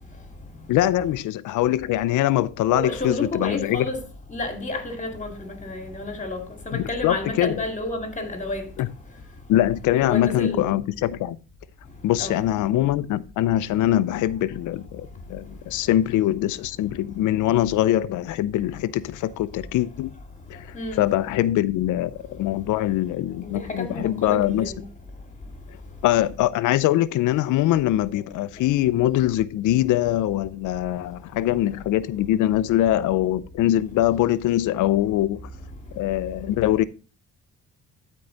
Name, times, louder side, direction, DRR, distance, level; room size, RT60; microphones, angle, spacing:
voice 1, 0.7-3.9 6.7-7.6 8.8-8.9 9.5-11.4 12.0-20.2 20.5-20.7 21.0-24.7 26.0-35.4 35.9-36.8, left 13 dB, 85° left, 0.6 m, -23 dB
voice 2, 2.7-4.0 4.3-8.6 10.0-10.7 12.2-12.4 20.7-21.1 23.4-24.8, left 2 dB, 25° left, 2.3 m, -31 dB
12.0 x 4.7 x 3.9 m
cardioid pair, 90°, 30 cm